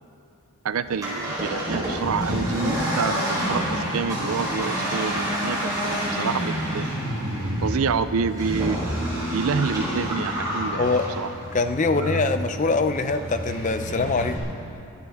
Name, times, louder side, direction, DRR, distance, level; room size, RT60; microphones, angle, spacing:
voice 1, 0.6-5.7 6.2-6.9 7.6-8.8 9.3-11.3 11.9-12.2, right 5 dB, 80° right, 13 dB, 0.5 m, -28 dB
Accelerating revving vroom, 0.9-14.4, equal, 15° right, 3.9 m, -28 dB
voice 2, 11.5-14.4, left 3 dB, 35° left, 9 dB, 0.5 m, -23 dB
23.0 x 11.5 x 3.5 m, 2.6 s
head